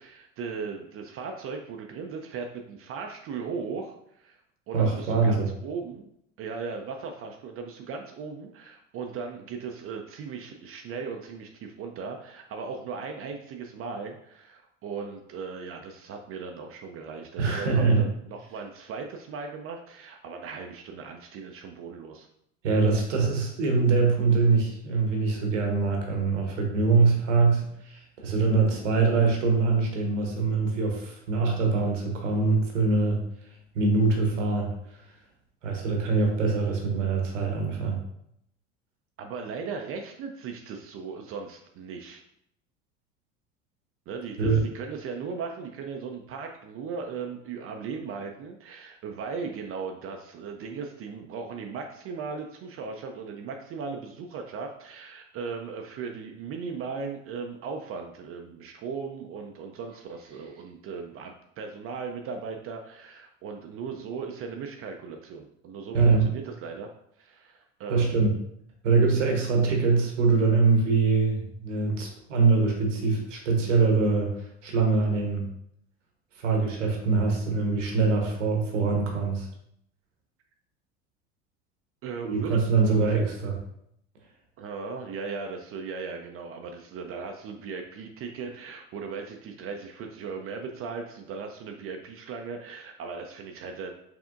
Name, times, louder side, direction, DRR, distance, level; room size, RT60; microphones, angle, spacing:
voice 1, 0.0-4.4 4.7-6.1 6.4-22.3 39.2-42.2 44.1-66.9 67.2-68.2 82.0-83.2 84.6-93.9, right 5 dB, 35° right, 3 dB, 0.5 m, -37 dB
voice 2, 4.7-5.5 17.4-18.0 22.6-33.2 33.7-34.7 35.6-38.0 44.4-44.6 65.9-66.3 67.9-68.3 68.8-75.5 76.4-79.5 82.2-83.6, right 4 dB, 75° right, 1 dB, 1.2 m, -23 dB
6.0 x 3.4 x 2.5 m, 0.74 s
figure-of-eight pair, 75°, 37 cm